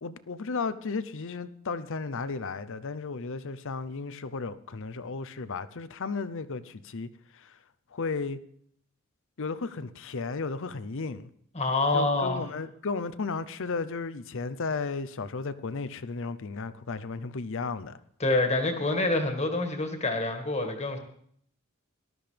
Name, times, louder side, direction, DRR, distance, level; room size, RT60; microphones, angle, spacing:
voice 1, 0.0-7.6 7.9-8.4 9.4-11.3 11.9-18.0, left 4 dB, 65° left, 0.7 m, -34 dB
voice 2, 11.5-12.5 18.2-21.0, left 2 dB, 30° left, 1.9 m, -26 dB
18.5 x 12.5 x 3.4 m
head